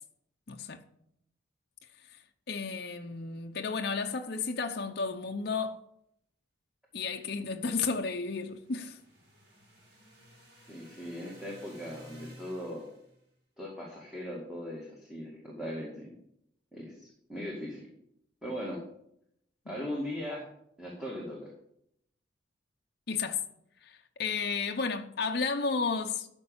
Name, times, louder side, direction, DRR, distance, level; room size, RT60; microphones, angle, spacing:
voice 1, 0.5-0.8 2.0-2.2 2.5-5.8 6.9-9.0 19.7-19.8 23.1-23.4 23.8-26.3, left 4 dB, 55° left, 0.7 m, -33 dB
sound 1, 8.2-13.2, right 1 dB, 55° right, 4.6 m, -55 dB
voice 2, 10.7-12.9 13.6-16.2 16.7-17.9 18.4-18.8 19.7-20.5 20.8-21.5, equal, 5° right, 2.1 m, -39 dB
13.0 x 5.4 x 7.2 m
head